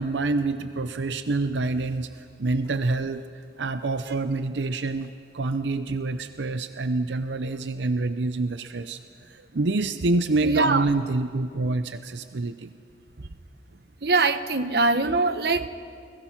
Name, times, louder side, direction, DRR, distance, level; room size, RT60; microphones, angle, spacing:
voice 1, 0.0-2.1 2.4-3.2 3.6-9.0 9.3-12.7, right 3 dB, 90° right, 10 dB, 0.7 m, -27 dB
voice 2, 10.4-10.9 14.0-15.7, right 3 dB, 65° right, 10 dB, 1.0 m, -23 dB
29.0 x 20.5 x 5.9 m, 2.4 s
head